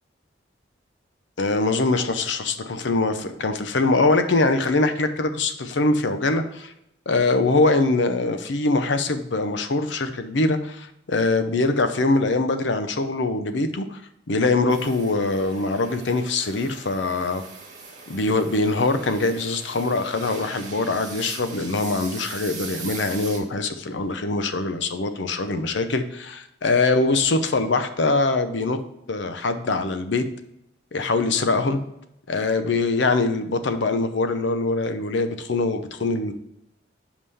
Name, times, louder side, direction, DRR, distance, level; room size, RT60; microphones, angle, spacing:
voice 1, 1.4-6.7 7.1-14.0 14.3-17.4 18.1-28.8 29.1-30.3 30.9-31.8 32.3-36.3, left 3 dB, 70° left, 9 dB, 0.7 m, -23 dB
sound 1, 14.7-23.4, right 4 dB, 40° right, 1.7 m, -40 dB
5.5 x 5.0 x 5.4 m, 0.82 s
head